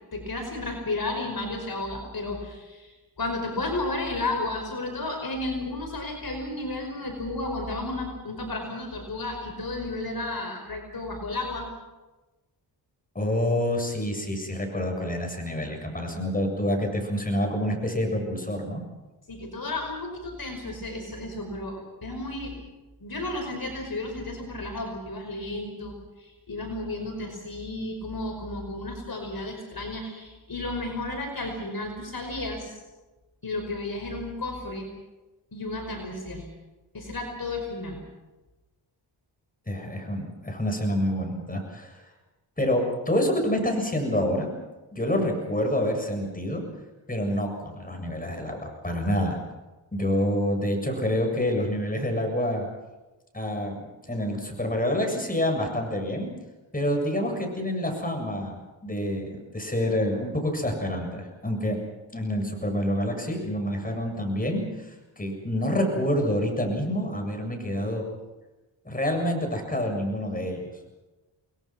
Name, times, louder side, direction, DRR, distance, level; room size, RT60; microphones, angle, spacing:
voice 1, 0.1-2.9 3.2-11.7 19.3-22.6 23.0-32.8 33.4-34.9 35.5-36.5 36.9-38.0, left 2 dB, 50° left, 3 dB, 5.3 m, -33 dB
voice 2, 13.1-18.8 39.7-42.0 42.6-44.5 44.9-46.6 47.1-49.4 49.9-52.7 53.3-56.3 56.7-61.8 62.1-68.1 68.8-70.6, left 1 dB, 15° left, 3 dB, 7.4 m, -27 dB
29.5 x 21.0 x 6.1 m, 1.1 s
cardioid pair, 75°, 47 cm